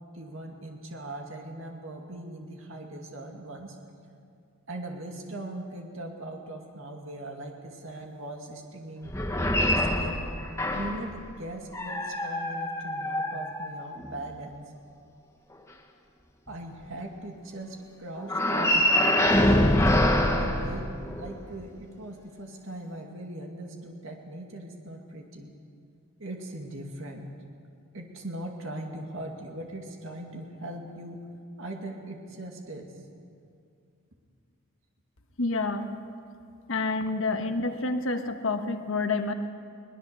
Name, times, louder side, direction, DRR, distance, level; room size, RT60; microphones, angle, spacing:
voice 1, 0.1-3.8 4.7-9.1 9.5-10.3 10.7-14.6 16.5-18.9 20.4-20.9 21.2-25.5 26.2-27.3 27.9-31.2 31.6-32.9, right 1 dB, 70° right, 1 dB, 2.3 m, -40 dB
sound 1, 9.1-11.1 11.7-14.1 18.2-21.4, left 1 dB, 15° left, 1.3 m, -25 dB
voice 2, 35.4-35.9 36.7-39.3, left 3 dB, 70° left, 7 dB, 1.3 m, -28 dB
22.5 x 19.5 x 6.9 m, 2.3 s
head